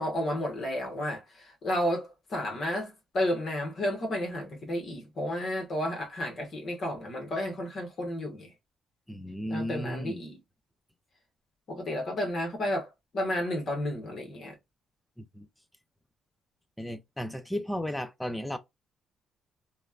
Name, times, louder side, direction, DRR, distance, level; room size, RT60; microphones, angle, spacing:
voice 1, 0.0-8.5 9.5-10.4 11.7-14.5, left 1 dB, 50° left, 1.1 m, -32 dB
voice 2, 9.1-10.2 15.2-15.5 16.8-18.6, equal, 5° left, 0.4 m, -34 dB
3.0 x 2.1 x 2.3 m
cardioid pair, 110°, 0 cm